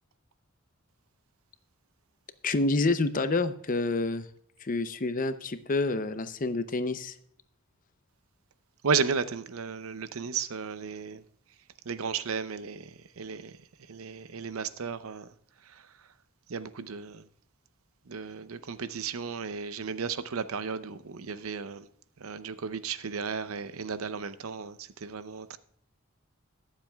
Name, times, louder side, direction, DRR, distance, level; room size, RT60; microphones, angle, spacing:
voice 1, 2.4-4.3 4.6-7.2, left 3 dB, 40° left, 0.6 m, -28 dB
voice 2, 8.8-11.2 11.9-13.6 13.9-15.3 15.7-15.8 16.5-17.2 18.1-21.9 22.2-25.6, right 5 dB, 90° right, 0.6 m, -34 dB
22.0 x 7.5 x 2.3 m
head